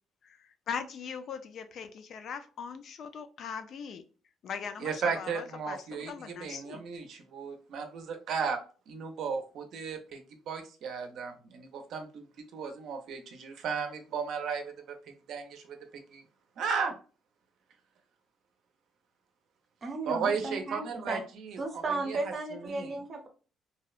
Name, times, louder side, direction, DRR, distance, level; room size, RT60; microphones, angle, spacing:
voice 1, 0.2-4.0 4.4-6.8, left 6 dB, 55° left, 9 dB, 0.3 m, -40 dB
voice 2, 4.8-8.6 8.9-12.2 12.5-15.0 15.3-15.8 16.1-16.2 16.6-16.9 20.1-21.6 22.1-22.2 22.5-23.0, right 5 dB, 65° right, 6 dB, 0.5 m, -35 dB
voice 3, 19.8-21.2 21.6-23.3, right 3 dB, 30° right, 3 dB, 0.7 m, -35 dB
2.7 x 2.1 x 2.3 m, 0.37 s
cardioid pair, 140°, 0 cm